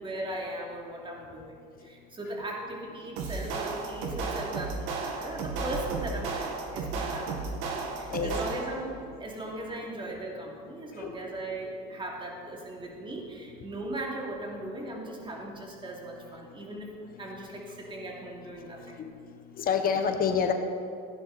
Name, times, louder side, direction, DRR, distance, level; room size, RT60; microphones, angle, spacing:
voice 1, 0.0-1.5 1.8-19.0 19.9-20.0, right 1 dB, 25° right, -1 dB, 2.8 m, -38 dB
sound 1, 3.2-8.9, right 4 dB, 80° right, 1.8 m, -34 dB
voice 2, 19.6-20.5, left 7 dB, 45° left, 6 dB, 1.2 m, -27 dB
15.5 x 10.0 x 4.3 m, 2.3 s
supercardioid pair, 105°, 20 cm